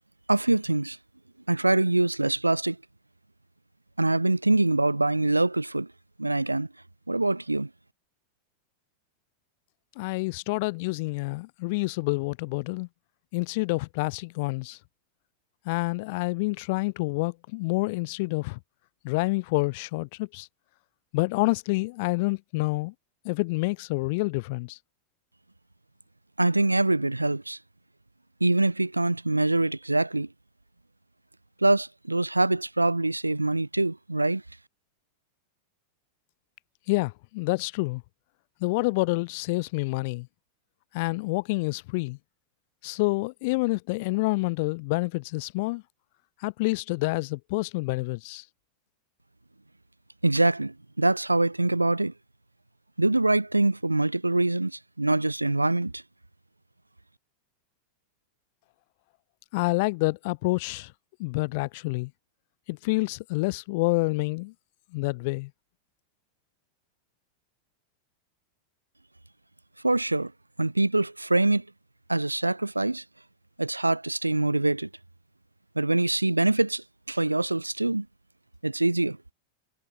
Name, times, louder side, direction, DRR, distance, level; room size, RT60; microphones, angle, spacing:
voice 1, 0.3-1.0 1.5-2.8 4.0-5.9 6.2-6.7 7.1-7.7 26.4-27.6 28.4-30.3 31.6-34.4 50.2-52.1 53.0-56.0 69.8-70.3 70.6-71.6 72.1-73.0 73.6-74.9 75.8-78.1 78.6-79.2, right 2 dB, 85° right, 0.7 m, -24 dB
voice 2, 10.0-12.9 13.3-14.8 15.7-18.6 19.0-20.5 21.1-22.9 23.2-24.8 36.9-38.0 38.6-40.3 40.9-42.2 42.8-45.8 46.4-48.4 59.5-60.9 61.2-62.1 62.7-64.5 64.9-65.5, left 25 dB, 50° left, 0.5 m, -28 dB
figure-of-eight pair, 90°, 0 cm